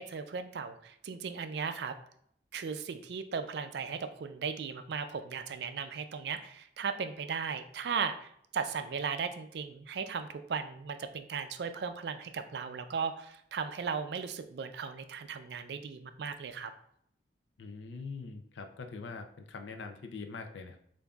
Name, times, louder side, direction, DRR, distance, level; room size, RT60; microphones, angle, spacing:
voice 1, 0.0-1.9 2.5-16.7, right 6 dB, 65° right, 9 dB, 0.4 m, -37 dB
voice 2, 17.6-20.8, left 4 dB, 85° left, 6 dB, 0.5 m, -43 dB
6.8 x 2.6 x 2.3 m, 0.69 s
head